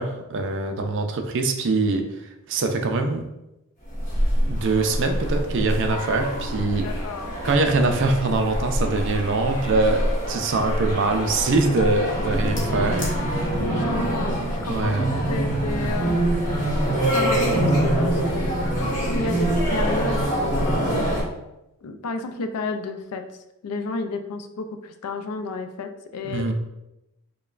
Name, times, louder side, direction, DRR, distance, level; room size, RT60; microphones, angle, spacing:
voice 1, 0.0-2.0 2.5-3.2 4.5-6.9 7.4-13.5 14.7-15.1 26.2-26.5, right 3 dB, 55° right, 5 dB, 0.4 m, -23 dB
sound 1, 3.9-21.2, right 1 dB, 35° left, 1.1 m, -25 dB
voice 2, 6.8-7.4 13.6-16.2 16.8-21.1 21.8-23.2 23.6-26.5, left 3 dB, 85° left, 7 dB, 0.4 m, -32 dB
5.1 x 2.2 x 2.4 m, 0.90 s
head